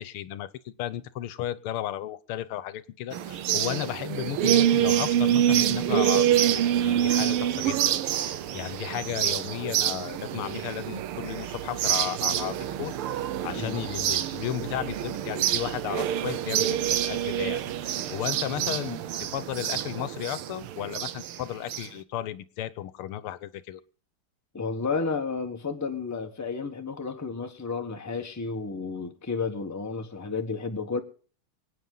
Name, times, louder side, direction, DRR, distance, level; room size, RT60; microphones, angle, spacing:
voice 1, 0.0-7.9 8.5-13.0 13.4-19.0 19.3-23.8, left 12 dB, 85° left, 1.7 m, -34 dB
sound 1, 3.1-21.9, right 11 dB, 85° right, 1.7 m, -27 dB
voice 2, 24.5-31.0, left 4 dB, 10° left, 1.2 m, -32 dB
25.0 x 9.2 x 3.9 m
omnidirectional pair, 2.4 m